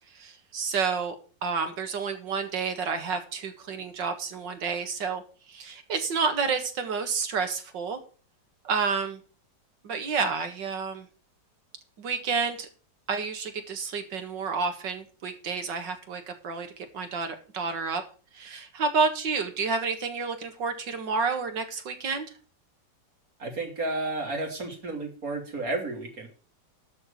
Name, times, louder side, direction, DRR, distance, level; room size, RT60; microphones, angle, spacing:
voice 1, 0.2-1.2 1.4-5.2 5.5-8.0 8.6-9.2 9.8-11.1 12.0-12.7 13.1-18.0 18.3-22.3, right 5 dB, 75° right, 7 dB, 2.3 m, -30 dB
voice 2, 23.4-26.3, right 2 dB, 50° right, 2 dB, 3.2 m, -32 dB
12.5 x 4.7 x 8.0 m, 0.39 s
omnidirectional pair, 2.0 m